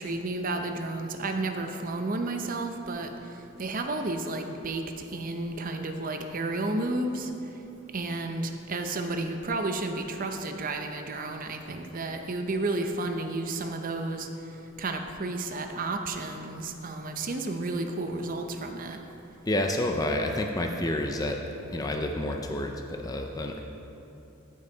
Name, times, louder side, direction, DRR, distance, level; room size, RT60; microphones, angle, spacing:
voice 1, 0.0-3.1 3.6-7.3 7.9-14.3 14.8-19.0, right 2 dB, 40° right, 5 dB, 0.6 m, -32 dB
voice 2, 19.5-21.4 21.7-23.6, left 1 dB, 15° left, 3 dB, 0.4 m, -29 dB
14.5 x 5.5 x 3.9 m, 2.9 s
head